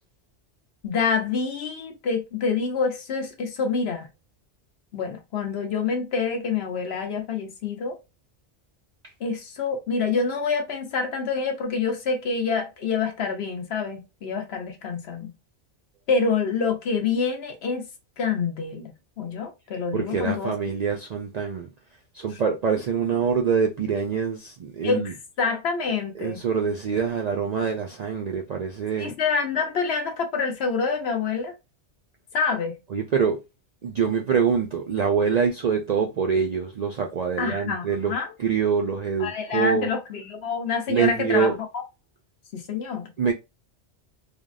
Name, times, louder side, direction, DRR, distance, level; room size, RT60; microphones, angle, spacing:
voice 1, 0.8-4.1 4.9-8.0 9.2-15.3 16.1-17.9 18.2-18.9 19.2-20.5 24.8-26.4 29.0-31.5 32.3-32.8 37.4-38.3 39.2-41.8 42.5-43.1, left 5 dB, 65° left, 1.0 m, -27 dB
voice 2, 19.9-21.7 22.1-25.1 26.2-29.1 32.9-33.4 33.8-39.9 40.9-41.6 43.2-43.3, right 6 dB, 60° right, 0.4 m, -25 dB
3.4 x 2.1 x 2.4 m
omnidirectional pair, 1.2 m